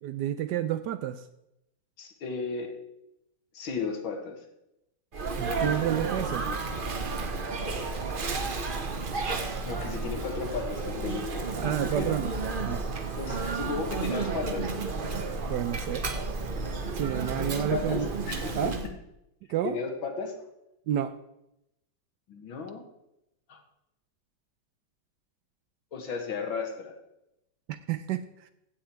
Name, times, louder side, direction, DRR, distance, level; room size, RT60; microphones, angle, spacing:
voice 1, 0.0-1.2 5.4-6.5 11.6-12.3 12.7-12.9 15.5-16.0 16.9-18.1 18.5-18.7 19.5-19.8 20.9-21.2 27.7-28.5, right 11 dB, 75° right, 12 dB, 1.0 m, -30 dB
voice 2, 2.0-2.7 3.5-4.5 9.6-12.2 13.2-14.7 17.4-18.7 19.6-20.4 22.3-22.8 23.5-23.6 25.9-26.9, left 5 dB, 80° left, 4 dB, 2.3 m, -35 dB
Sneeze, 5.1-18.9, right 4 dB, 40° right, 0.8 m, -32 dB
15.5 x 7.3 x 4.5 m, 0.86 s
omnidirectional pair, 2.1 m